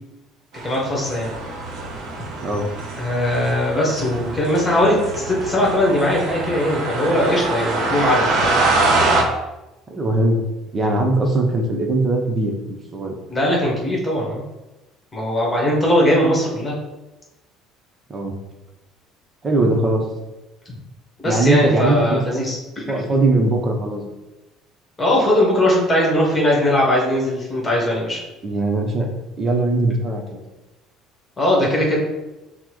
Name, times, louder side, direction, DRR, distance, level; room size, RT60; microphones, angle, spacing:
sound 1, 0.5-9.2, right 2 dB, 70° right, 0.7 m, -24 dB
voice 1, 0.6-1.3 3.0-8.5 13.3-14.4 15.1-16.7 21.2-23.1 25.0-28.2 31.4-32.0, left 1 dB, 20° left, -3 dB, 1.3 m, -20 dB
voice 2, 9.9-10.4 10.7-13.1 18.1-18.3 19.4-20.1 21.2-22.4 22.9-24.1 28.4-29.1 29.4-30.4, right 2 dB, 35° right, 2 dB, 0.7 m, -20 dB
5.7 x 2.1 x 3.0 m, 1.0 s
cardioid pair, 105°, 0 cm